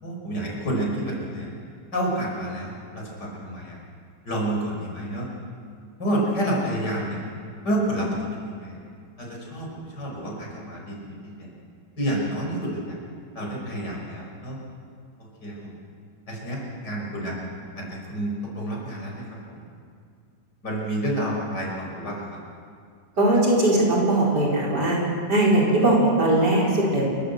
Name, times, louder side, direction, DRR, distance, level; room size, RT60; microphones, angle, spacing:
voice 1, 0.0-1.5 1.9-3.8 4.3-5.3 6.0-7.2 7.6-8.8 9.2-11.5 12.0-13.0 13.3-14.6 15.4-15.7 16.3-17.4 17.8-19.3 19.5-19.6 20.6-22.4, right 1 dB, 70° left, -2 dB, 5.9 m, -29 dB
voice 2, 23.2-25.0 25.3-27.0, right 1 dB, 65° right, -4 dB, 5.2 m, -20 dB
28.5 x 13.0 x 8.1 m, 2.2 s
omnidirectional pair, 1.9 m